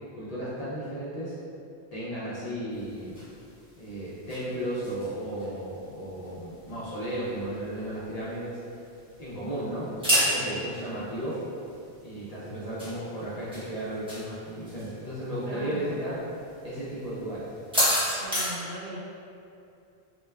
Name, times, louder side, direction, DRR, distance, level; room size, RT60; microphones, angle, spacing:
voice 1, 0.1-1.3 1.9-3.2 3.8-8.6 9.2-11.4 12.0-16.2 16.6-17.5, right 1 dB, 50° left, -9 dB, 0.5 m, -34 dB
sound 1, 2.7-18.5, equal, 5° right, 0.7 m, -34 dB
voice 2, 15.4-16.0 17.7-17.9 18.2-19.0, equal, 70° right, -5 dB, 0.8 m, -39 dB
2.2 x 2.2 x 3.2 m, 2.6 s
omnidirectional pair, 1.0 m